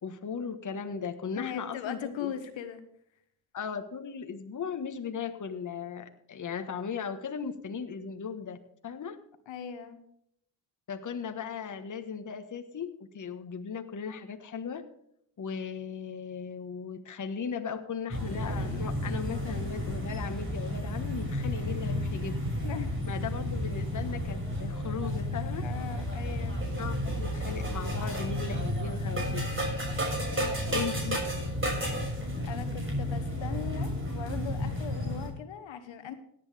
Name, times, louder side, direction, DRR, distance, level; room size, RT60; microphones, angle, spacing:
voice 1, 0.0-2.3 3.5-8.6 8.8-9.2 10.9-14.8 15.4-22.4 23.1-25.7 26.7-29.5 30.7-31.2, left 6 dB, 35° left, 7 dB, 1.4 m, -37 dB
voice 2, 1.3-2.8 9.5-10.0 22.6-22.9 25.6-26.6 30.3-30.8 32.4-36.1, left 8 dB, 65° left, 9 dB, 1.5 m, -39 dB
sound 1, 18.1-35.3, equal, 25° right, 6.2 m, -32 dB
17.0 x 9.1 x 3.5 m, 0.72 s
supercardioid pair, 70°, 49 cm